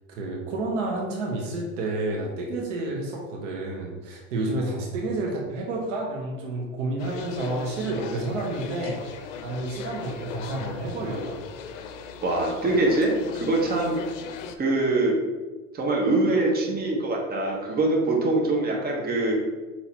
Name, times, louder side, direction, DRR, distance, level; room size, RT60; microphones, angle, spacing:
voice 1, 0.1-11.4, right 2 dB, 75° right, -1 dB, 1.0 m, -30 dB
sound 1, 7.0-14.6, left 6 dB, 70° left, 0.6 m, -38 dB
voice 2, 12.2-14.0 14.6-15.2 15.7-19.4, right 2 dB, 25° right, -1 dB, 1.1 m, -23 dB
5.7 x 2.9 x 2.9 m, 1.3 s
hypercardioid pair, 100°, 38 cm